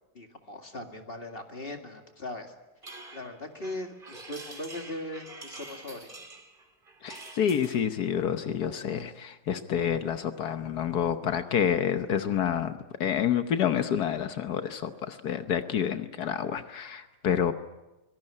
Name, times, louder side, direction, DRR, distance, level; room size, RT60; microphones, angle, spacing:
voice 1, 0.1-2.5 2.9-6.1, left 1 dB, 35° left, 5 dB, 2.3 m, -39 dB
sound 1, 2.8-7.9, right 2 dB, 30° right, 2.6 m, -46 dB
voice 2, 7.0-17.5, left 8 dB, 75° left, 9 dB, 1.5 m, -28 dB
25.0 x 17.5 x 9.9 m, 1.1 s
omnidirectional pair, 1.7 m